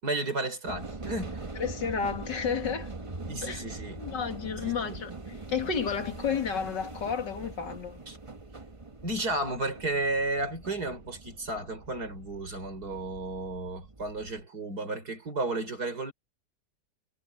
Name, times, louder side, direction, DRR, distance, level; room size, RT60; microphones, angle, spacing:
voice 1, 0.0-1.5 3.3-4.0 4.6-5.0 8.1-8.2 9.0-16.1, right 2 dB, 60° right, 5.8 m, -33 dB
sound 1, 0.7-14.4, right 3 dB, 20° right, 1.2 m, -42 dB
voice 2, 1.6-2.9 3.4-3.6 4.0-8.0, left 6 dB, 90° left, 2.8 m, -32 dB
omnidirectional pair, 1.8 m